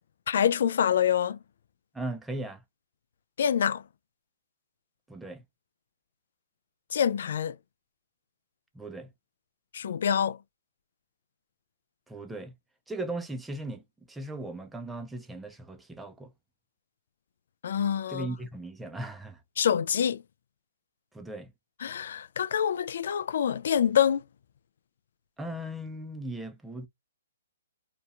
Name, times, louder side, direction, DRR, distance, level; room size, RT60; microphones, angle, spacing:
voice 1, 0.3-1.4 3.4-3.8 6.9-7.6 9.7-10.4 17.6-18.3 19.6-20.2 21.8-24.3, left 8 dB, 60° left, 0.3 m, -26 dB
voice 2, 1.9-2.6 5.1-5.4 8.7-9.1 12.1-12.5 12.9-16.3 18.1-19.4 21.1-21.5 25.4-26.9, right 1 dB, 5° right, 0.5 m, -38 dB
2.8 x 2.3 x 2.5 m
hypercardioid pair, 145°, 0 cm